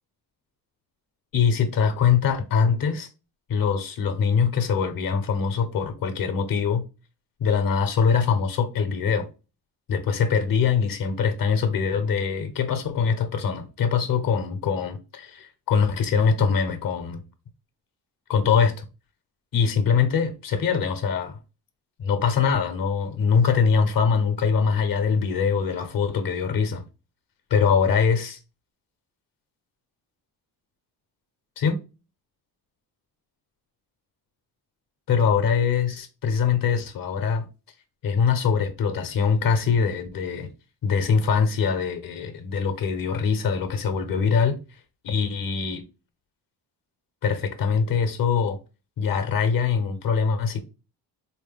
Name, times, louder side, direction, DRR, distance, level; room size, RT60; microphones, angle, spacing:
voice 1, 1.3-3.1 3.5-6.8 7.4-9.3 9.9-17.2 18.3-18.7 19.5-21.4 22.0-26.8 27.5-28.4 31.6-31.8 35.1-37.4 38.0-40.5 40.8-44.6 45.0-45.8 47.2-48.6 49.0-50.6, left 6 dB, 60° left, 0.8 m, -23 dB
4.2 x 2.1 x 3.5 m
cardioid pair, 140°, 39 cm